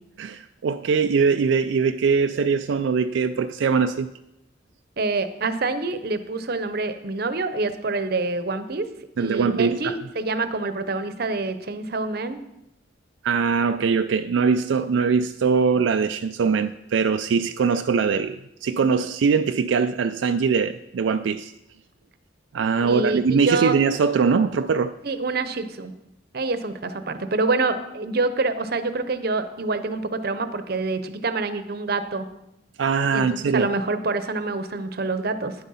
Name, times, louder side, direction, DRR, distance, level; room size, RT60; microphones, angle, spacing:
voice 1, 0.2-4.1 9.2-10.0 13.2-21.5 22.5-24.9 32.8-33.7, right 5 dB, 85° right, 0.4 m, -22 dB
voice 2, 5.0-8.9 9.2-12.4 22.8-23.7 25.0-25.9 26.3-32.3 33.1-35.6, right 3 dB, 55° right, 0.8 m, -26 dB
10.0 x 7.5 x 5.6 m
head